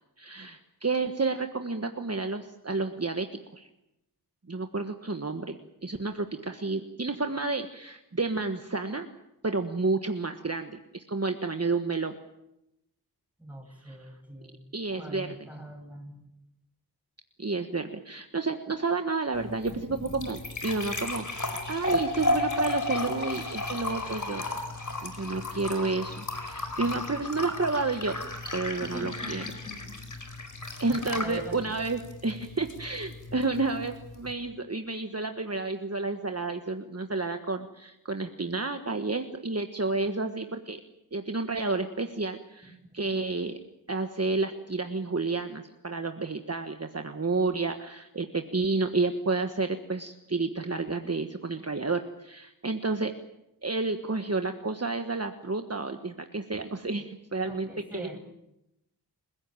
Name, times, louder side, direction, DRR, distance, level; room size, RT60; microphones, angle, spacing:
voice 1, 0.2-3.7 4.5-9.1 9.4-12.2 13.8-14.1 14.7-15.3 17.4-19.7 20.1-24.4 25.0-28.2 28.5-29.4 30.8-40.8 41.1-43.6 43.9-53.1 53.6-58.2, right 3 dB, 40° right, 6 dB, 1.4 m, -30 dB
voice 2, 13.4-14.6 14.9-16.3 19.7-20.1 27.0-27.1 28.8-29.8 30.9-31.6 42.6-43.2 57.4-58.2, equal, 5° right, 3 dB, 6.7 m, -43 dB
sound 1, 19.3-34.3, left 2 dB, 50° left, 4.3 m, -34 dB
28.5 x 16.0 x 9.0 m, 0.86 s
wide cardioid pair, 60°, 39 cm